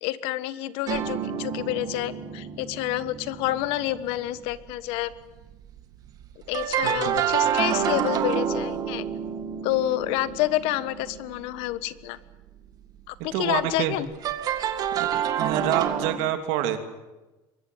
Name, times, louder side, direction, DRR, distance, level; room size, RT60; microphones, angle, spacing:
voice 1, 0.0-5.1 6.5-9.0 9.6-12.2 13.1-14.1, left 15 dB, 75° left, 15 dB, 1.4 m, -28 dB
sound 1, 0.9-5.1 5.4-11.7 14.1-16.2, right 8 dB, 40° right, 2.1 m, -29 dB
voice 2, 6.8-7.2 13.3-14.0 14.9-15.1 15.4-16.8, right 12 dB, 85° right, 8 dB, 3.0 m, -27 dB
24.0 x 21.0 x 9.3 m, 1.1 s
cardioid pair, 160°, 10 cm